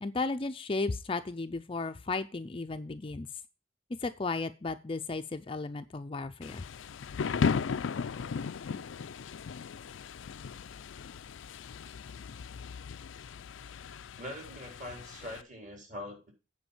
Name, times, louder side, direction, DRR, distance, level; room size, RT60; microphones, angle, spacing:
voice 1, 0.0-3.3 4.0-6.6, left 3 dB, 30° left, 9 dB, 0.5 m, -34 dB
Thunder / Rain, 6.4-15.4, left 5 dB, 85° left, 0.4 m, -36 dB
voice 2, 14.1-16.3, left 1 dB, 40° right, 1 dB, 4.1 m, -43 dB
9.0 x 5.2 x 7.1 m, 0.31 s
head